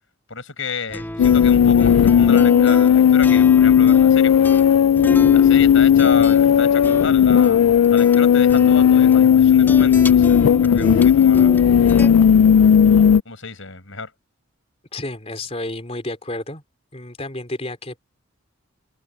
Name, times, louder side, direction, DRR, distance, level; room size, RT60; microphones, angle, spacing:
voice 1, 0.3-4.6 5.3-7.6 7.9-11.5 13.2-14.1, left 4 dB, 65° left, 6.0 m, -30 dB
sound 1, 0.9-12.1, equal, 10° left, 2.8 m, -31 dB
sound 2, 1.2-13.2, left 8 dB, 90° left, 0.3 m, -14 dB
voice 2, 14.9-16.6 16.9-18.0, left 2 dB, 30° left, 3.7 m, -31 dB
head